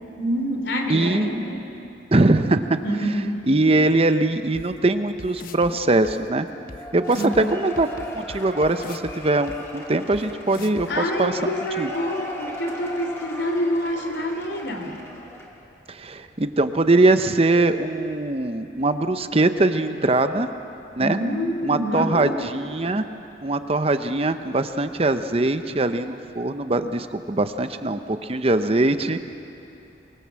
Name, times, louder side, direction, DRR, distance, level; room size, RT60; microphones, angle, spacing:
voice 1, 0.2-1.6 2.8-3.5 7.1-7.4 10.9-14.9 21.0-22.5, equal, 75° left, 3 dB, 3.2 m, -26 dB
voice 2, 0.9-1.3 2.1-2.8 3.5-6.5 6.9-7.9 8.1-11.9 15.9-20.5 21.0-21.2 21.6-23.0 23.4-29.2, right 2 dB, 35° right, 9 dB, 0.8 m, -21 dB
sound 1, 4.5-4.6 5.2-5.7 6.0-6.1 6.7-6.8 7.1-7.4 7.8-9.1 9.5-9.6 10.1-10.2 10.5-10.9, left 2 dB, 50° left, 1.0 m, -39 dB
Cheering / Applause / Crowd, 6.7-15.6, left 1 dB, 15° left, 2.9 m, -38 dB
25.0 x 21.0 x 7.6 m, 2.8 s
head